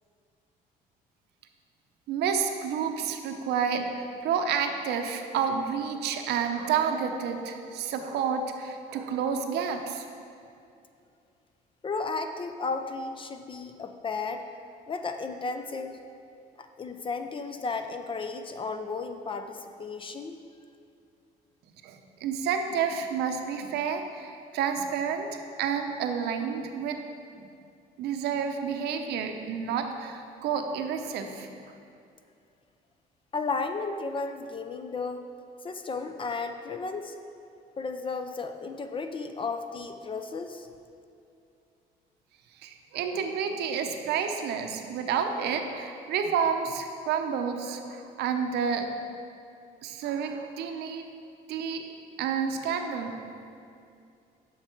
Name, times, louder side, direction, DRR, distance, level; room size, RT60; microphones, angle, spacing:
voice 1, 2.1-10.0 21.8-27.0 27.4-27.5 28.0-31.5 42.6-48.9 49.8-51.1 51.5-51.8 52.2-53.2, right 6 dB, 80° right, 5 dB, 0.7 m, -30 dB
voice 2, 11.8-14.5 14.9-16.0 16.6-20.4 33.3-35.2 35.6-37.2 37.8-40.7, left 4 dB, 30° left, 7 dB, 0.4 m, -34 dB
7.9 x 5.8 x 4.5 m, 2.5 s
cardioid pair, 110°, 17 cm